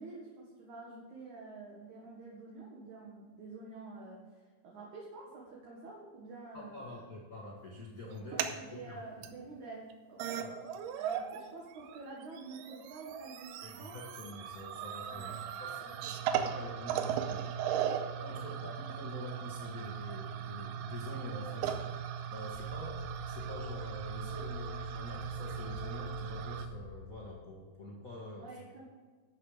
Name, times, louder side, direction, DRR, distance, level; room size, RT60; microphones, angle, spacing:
voice 1, 0.0-4.3 4.6-7.0 8.3-10.4 11.0-14.0 15.1-15.4 15.8-16.2 16.5-17.0 18.3-18.7 28.4-28.8, right 3 dB, 60° right, -3 dB, 2.6 m, -48 dB
voice 2, 6.5-9.0 10.4-10.6 13.6-15.3 15.6-15.8 16.3-28.5, left 2 dB, 75° left, -3 dB, 0.7 m, -46 dB
sound 1, 8.1-8.6 9.2-9.3 9.9-10.0 10.2-11.4 11.7-26.7, right 9 dB, 90° right, 2.7 m, -38 dB
sound 2, 22.5-27.5, left 9 dB, 90° left, 2.6 m, -47 dB
12.5 x 7.8 x 4.9 m, 1.4 s
omnidirectional pair, 4.4 m